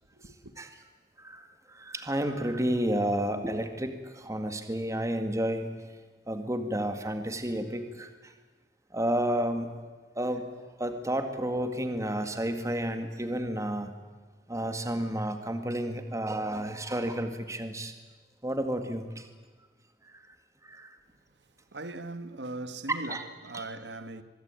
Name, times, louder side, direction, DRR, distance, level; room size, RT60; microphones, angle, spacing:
voice 1, 0.1-0.5 21.7-24.2, right 2 dB, 70° right, 1.6 m, -40 dB
voice 2, 1.2-5.9 6.3-8.3 8.9-9.8 10.2-10.5 10.8-13.9 14.5-17.9 18.4-19.3 20.0-20.2 20.6-21.0 22.9-23.2 23.5-23.7, right 1 dB, 20° right, 2.0 m, -31 dB
24.5 x 22.0 x 9.0 m
head